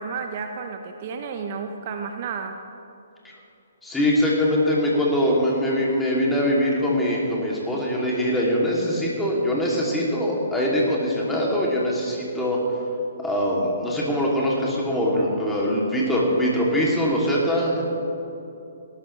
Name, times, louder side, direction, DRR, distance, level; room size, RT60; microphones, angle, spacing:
voice 1, 0.0-2.6, right 5 dB, 45° right, 5 dB, 0.9 m, -32 dB
voice 2, 3.8-12.6 13.2-17.8, equal, 5° left, -4 dB, 2.9 m, -22 dB
18.0 x 12.5 x 3.4 m, 2.8 s
figure-of-eight pair, 135°, 0 cm